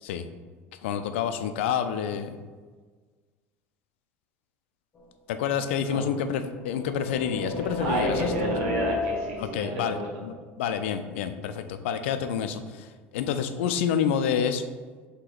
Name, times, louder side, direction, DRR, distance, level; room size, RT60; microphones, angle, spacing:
voice 1, 0.8-2.4 5.3-8.3 9.4-10.3 10.6-12.9 13.1-14.6, left 8 dB, 85° left, 9 dB, 0.3 m, -28 dB
sound 1, 5.0-5.1 6.1-9.6, left 2 dB, 30° left, 1.2 m, -32 dB
voice 2, 7.6-10.0, right 2 dB, 80° right, -2 dB, 1.3 m, -31 dB
3.8 x 2.9 x 4.4 m, 1.5 s
supercardioid pair, 95°, 6 cm